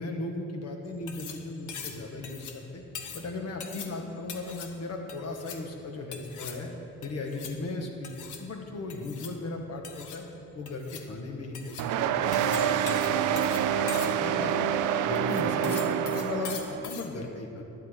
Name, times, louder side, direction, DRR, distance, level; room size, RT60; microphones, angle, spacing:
voice 1, 0.0-2.8 3.1-6.7 7.0-10.2 10.5-14.7 15.0-17.6, left 2 dB, 55° left, 2 dB, 1.7 m, -37 dB
sound 1, 0.9-17.1, left 6 dB, 80° left, 1.1 m, -43 dB
sound 2, 11.8-16.9, right 9 dB, 85° right, 0.5 m, -27 dB
11.5 x 11.0 x 3.9 m, 2.7 s
cardioid pair, 90°, 30 cm